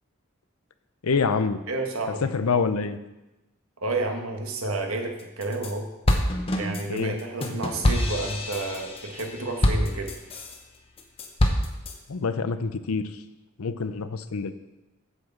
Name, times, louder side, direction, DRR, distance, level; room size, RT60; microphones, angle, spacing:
voice 1, 1.0-1.6 2.2-3.0 6.9-7.1 12.1-13.2 13.6-14.5, left 4 dB, 90° left, 11 dB, 0.6 m, -26 dB
voice 2, 1.7-2.3 3.8-5.9 6.5-10.2, right 2 dB, 85° right, 3 dB, 1.5 m, -30 dB
sound 1, 5.2-5.7 6.1-10.6 11.0-11.9, left 1 dB, 25° left, 0.8 m, -26 dB
8.3 x 5.8 x 7.2 m, 1.0 s
head